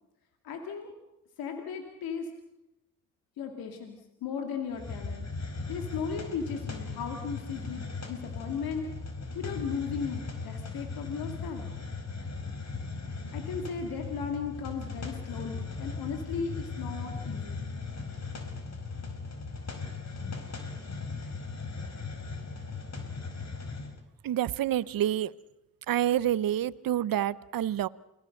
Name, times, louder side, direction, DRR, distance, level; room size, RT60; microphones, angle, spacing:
voice 1, 0.4-0.9 1.4-2.3 3.4-5.3 5.7-8.9 9.3-11.7 13.3-17.7, left 6 dB, 90° left, 4 dB, 2.4 m, -36 dB
Hiss, 4.7-24.0, left 4 dB, 50° left, 4.7 m, -38 dB
voice 2, 24.2-25.3 25.9-27.9, right 11 dB, 70° right, 18 dB, 0.8 m, -28 dB
29.0 x 21.0 x 6.6 m, 0.92 s
supercardioid pair, 45°, 35 cm